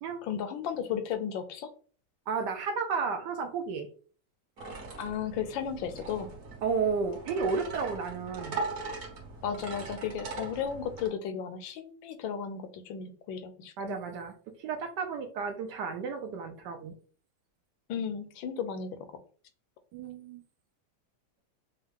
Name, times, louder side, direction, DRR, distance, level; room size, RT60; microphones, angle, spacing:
voice 1, 0.2-1.7 5.0-6.3 9.4-14.0 17.9-19.0, left 7 dB, 80° left, 9 dB, 1.3 m, -34 dB
voice 2, 2.3-3.9 6.6-8.6 13.8-14.3 14.6-16.9 19.9-20.4, right 5 dB, 75° right, 5 dB, 1.1 m, -32 dB
sound 1, 4.6-11.1, right 3 dB, 45° right, 1.4 m, -40 dB
5.3 x 2.3 x 3.4 m, 0.42 s
omnidirectional pair, 2.1 m